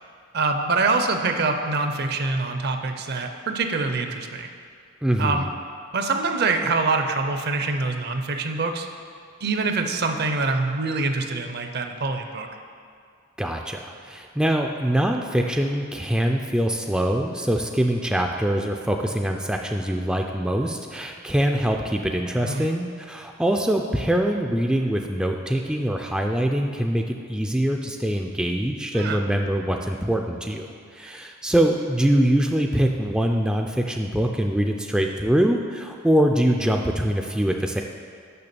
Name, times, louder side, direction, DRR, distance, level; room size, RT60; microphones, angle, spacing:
voice 1, 0.3-4.5 5.2-5.5 5.9-8.9 9.4-12.5 22.4-22.7 28.9-29.2, right 3 dB, 55° right, 6 dB, 0.6 m, -25 dB
voice 2, 5.0-5.4 13.4-37.8, right 1 dB, 5° right, 2 dB, 0.3 m, -23 dB
6.8 x 5.7 x 6.8 m, 2.2 s
head